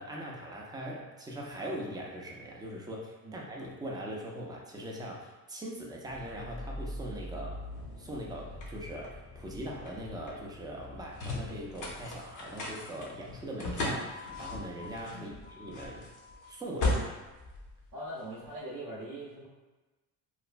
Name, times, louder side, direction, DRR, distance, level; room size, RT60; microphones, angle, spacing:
voice 1, 0.0-7.6 8.0-16.1 16.5-17.1, right 1 dB, 10° right, -2 dB, 0.4 m, -41 dB
sound 1, 6.1-18.5, left 2 dB, 45° left, 0.7 m, -38 dB
voice 2, 17.9-19.5, right 1 dB, 50° right, -7 dB, 0.7 m, -41 dB
3.1 x 2.1 x 2.4 m, 1.2 s
cardioid pair, 110°, 42 cm